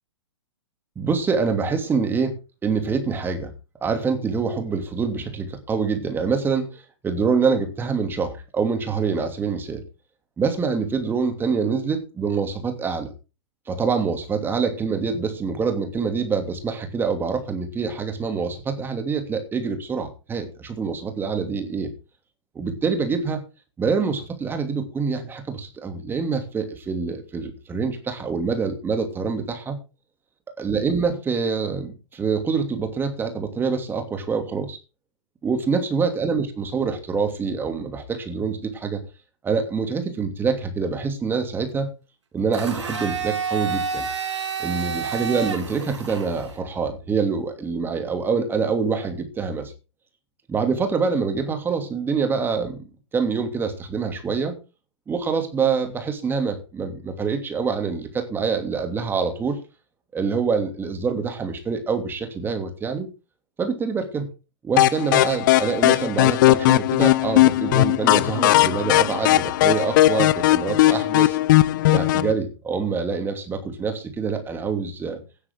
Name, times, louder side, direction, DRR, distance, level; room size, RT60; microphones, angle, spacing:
voice 1, 1.0-3.5 3.8-9.8 10.4-13.1 13.7-21.9 22.5-23.4 23.8-29.8 30.6-34.8 35.4-39.0 39.4-41.9 42.3-44.1 44.6-49.7 50.5-52.8 53.1-54.6 55.1-59.6 60.1-63.1 63.6-64.3 64.6-71.4 71.9-75.2, right 5 dB, 15° right, 6 dB, 2.8 m, -25 dB
Domestic sounds home sounds, 42.5-46.6, right 6 dB, 75° right, 4.1 m, -29 dB
sound 1, 64.8-72.3, left 16 dB, 40° left, 0.8 m, -18 dB
17.5 x 9.7 x 3.8 m, 0.30 s
figure-of-eight pair, 120°, 15 cm